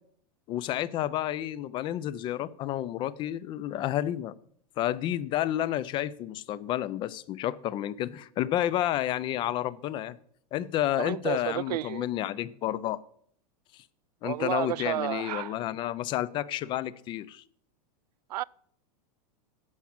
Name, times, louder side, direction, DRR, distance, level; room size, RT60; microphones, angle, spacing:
voice 1, 0.5-4.3 4.8-10.2 10.5-13.0 14.2-17.4, left 13 dB, 25° left, 0.4 m, -30 dB
voice 2, 11.0-12.1 14.2-15.5 18.3-18.4, right 15 dB, 90° right, 0.4 m, -31 dB
10.5 x 5.9 x 7.2 m
supercardioid pair, 155°, 20 cm